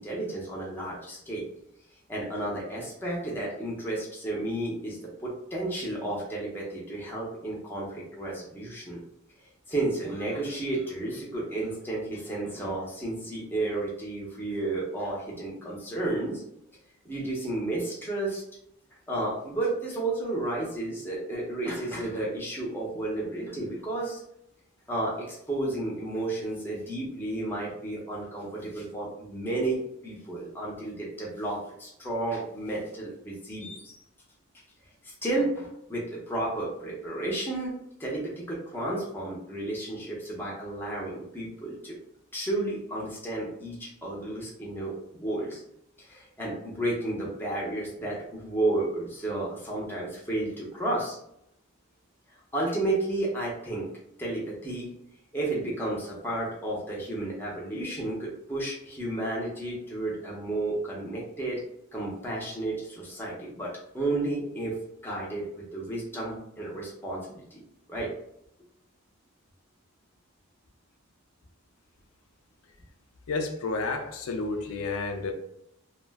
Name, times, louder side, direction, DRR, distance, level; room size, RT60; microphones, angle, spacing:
voice 1, 0.0-1.4 2.1-9.0 9.7-16.4 17.0-18.4 19.1-24.2 24.9-34.0 35.0-42.0 42.3-45.6 46.0-51.2 52.5-53.9 54.2-54.9 55.3-61.6 61.9-67.6 67.9-68.1, right 2 dB, 10° left, -5 dB, 0.6 m, -32 dB
voice 2, 73.3-75.3, left 3 dB, 75° left, 5 dB, 0.5 m, -31 dB
2.4 x 2.1 x 3.4 m, 0.76 s
head